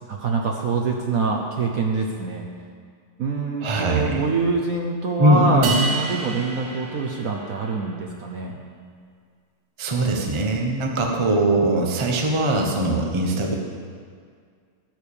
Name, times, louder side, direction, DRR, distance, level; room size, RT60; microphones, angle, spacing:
voice 1, 0.1-2.5 3.2-8.6, right 4 dB, 60° right, 0 dB, 0.9 m, -25 dB
voice 2, 3.6-4.2 5.2-5.8 9.8-13.5, right 1 dB, 35° right, 1 dB, 0.4 m, -21 dB
sound 1, 5.6-7.9, right 3 dB, 80° right, 1.9 m, -30 dB
14.0 x 4.7 x 7.0 m, 2.1 s
omnidirectional pair, 2.3 m